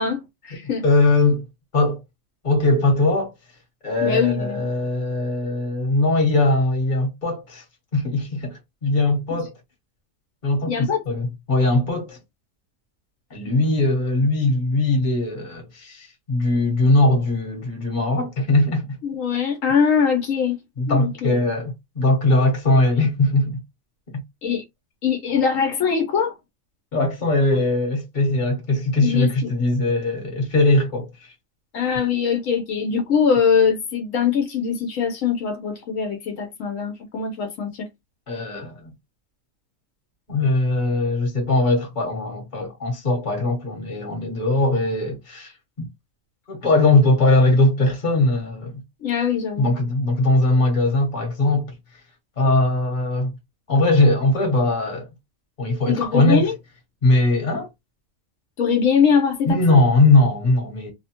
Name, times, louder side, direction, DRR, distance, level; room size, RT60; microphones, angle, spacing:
voice 1, 0.0-0.8 4.0-4.7 10.7-11.0 19.0-20.6 20.9-21.3 24.4-24.6 25.0-26.3 29.0-29.3 31.7-37.9 49.0-49.7 55.9-56.5 58.6-59.8, left 6 dB, 80° left, 1.1 m, -22 dB
voice 2, 0.8-1.4 1.7-2.0 2.4-3.3 3.8-7.6 7.9-9.5 10.4-12.2 13.3-19.0 20.8-23.6 26.9-31.1 38.3-38.9 40.3-45.9 46.5-48.8 49.6-51.7 52.4-53.4 53.7-55.1 55.6-56.5 57.0-57.7 59.5-60.9, left 2 dB, 40° left, 1.2 m, -20 dB
2.7 x 2.0 x 2.8 m
omnidirectional pair, 1.4 m